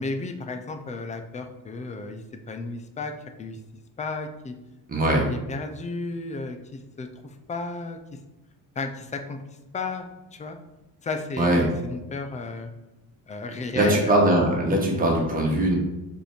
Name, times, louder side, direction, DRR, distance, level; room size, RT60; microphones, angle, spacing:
voice 1, 0.0-3.1 3.4-3.6 4.0-4.5 5.1-8.0 8.8-9.4 9.7-10.6 11.0-12.7 13.3-14.2 14.7-14.8, left 3 dB, 15° left, 6 dB, 0.4 m, -33 dB
voice 2, 4.9-5.3 11.4-11.7 13.7-15.7, right 1 dB, 20° right, -1 dB, 1.4 m, -21 dB
5.2 x 4.4 x 5.0 m, 1.0 s
cardioid pair, 160°, 43 cm